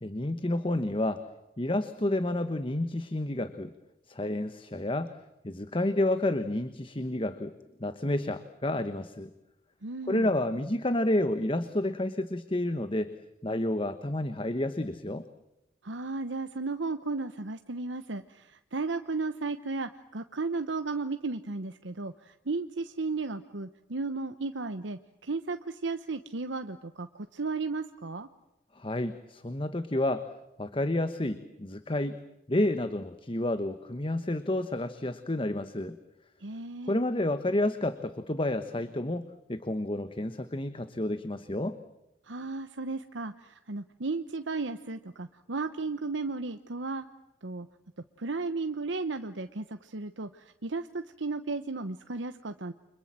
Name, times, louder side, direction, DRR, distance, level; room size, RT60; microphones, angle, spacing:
voice 1, 0.0-1.3 1.6-3.7 4.1-5.2 5.4-7.5 7.8-9.3 10.1-13.1 13.4-15.2 28.7-30.3 30.6-32.2 32.5-36.0 36.9-41.8, left 1 dB, 30° left, 11 dB, 1.1 m, -30 dB
voice 2, 9.8-10.3 15.8-28.3 36.4-37.0 42.2-47.1 47.4-47.7 48.2-52.7, right 3 dB, 90° right, 9 dB, 1.1 m, -34 dB
30.0 x 26.0 x 7.6 m, 0.90 s
head